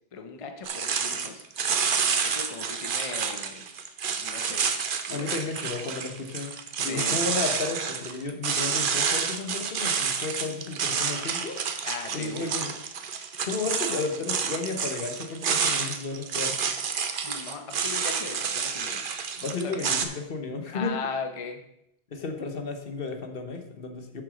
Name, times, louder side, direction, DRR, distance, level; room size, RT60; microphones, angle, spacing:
voice 1, 0.1-1.4 2.2-3.7 4.1-4.7 5.1-5.5 6.8-7.3 11.8-12.6 17.2-19.0 19.6-20.0 20.7-21.7, left 5 dB, 35° left, 5 dB, 0.7 m, -38 dB
sound 1, 0.6-20.0, right 6 dB, 55° right, 0.9 m, -29 dB
voice 2, 5.1-6.5 6.8-11.6 12.1-12.7 13.4-16.6 19.4-20.9 22.1-24.2, left 4 dB, 60° left, 6 dB, 1.1 m, -33 dB
6.9 x 6.9 x 5.0 m, 0.80 s
omnidirectional pair, 1.1 m